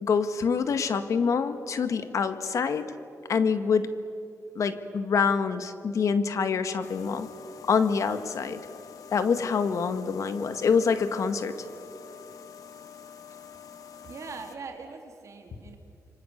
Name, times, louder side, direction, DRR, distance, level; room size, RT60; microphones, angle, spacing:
voice 1, 0.0-2.9 3.3-4.0 4.6-7.3 7.7-8.6 9.1-11.6, left 5 dB, 65° left, 10 dB, 1.8 m, -26 dB
sound 1, 6.8-14.6, left 8 dB, 80° left, 1.6 m, -47 dB
voice 2, 14.0-15.8, right 4 dB, 60° right, 3 dB, 3.9 m, -41 dB
28.5 x 25.0 x 8.2 m, 2.5 s
cardioid pair, 90°, 6 cm